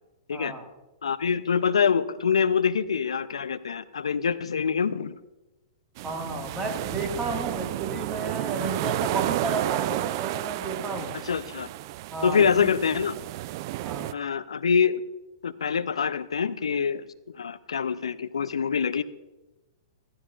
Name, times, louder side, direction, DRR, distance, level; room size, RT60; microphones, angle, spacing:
voice 1, 0.3-0.6 6.0-11.1 12.1-12.7 13.8-14.2, right 2 dB, 15° right, 2 dB, 1.7 m, -33 dB
voice 2, 1.0-5.2 11.2-11.7 12.2-13.2 14.1-15.0 15.4-17.1 17.4-19.0, left 6 dB, 75° left, 15 dB, 0.5 m, -25 dB
sound 1, 6.0-14.1, right 16 dB, 45° right, 0.3 m, -31 dB
15.0 x 13.5 x 2.4 m, 1.0 s
hypercardioid pair, 115°, 3 cm